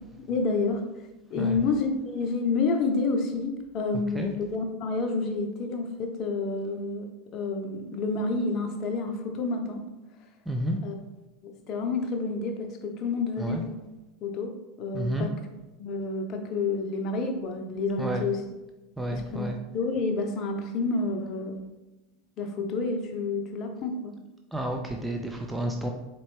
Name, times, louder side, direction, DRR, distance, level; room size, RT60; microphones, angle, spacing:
voice 1, 0.3-0.8 1.3-7.1 7.3-9.8 10.8-10.9 11.4-13.6 14.2-15.3 15.8-18.4 19.1-19.5 19.7-21.6 22.4-24.1, left 3 dB, 45° left, 4 dB, 0.6 m, -29 dB
voice 2, 10.5-10.8 13.4-13.6 14.9-15.3 18.0-18.2 19.0-19.6 24.5-25.9, right 1 dB, 10° right, 2 dB, 0.5 m, -30 dB
4.1 x 3.0 x 3.2 m, 1.0 s
figure-of-eight pair, 80°, 0 cm